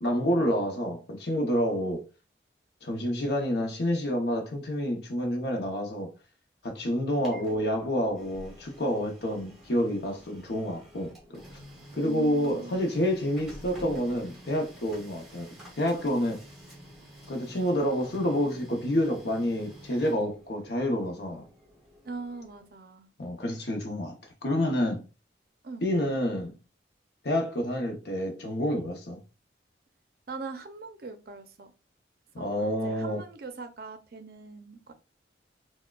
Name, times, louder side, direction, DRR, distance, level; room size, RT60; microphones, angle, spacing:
voice 1, 0.0-2.0 2.8-6.1 6.6-11.4 11.9-16.4 17.3-21.4 23.2-24.1 24.4-25.0 25.8-26.6 27.2-29.2 32.3-33.2, equal, 60° left, 0.7 m, -28 dB
Printer, 6.9-22.7, equal, ahead, 1.1 m, -50 dB
voice 2, 12.0-12.8 22.0-23.1 25.6-25.9 30.3-31.7 32.4-34.9, right 3 dB, 55° right, 0.5 m, -41 dB
4.4 x 2.1 x 2.3 m
head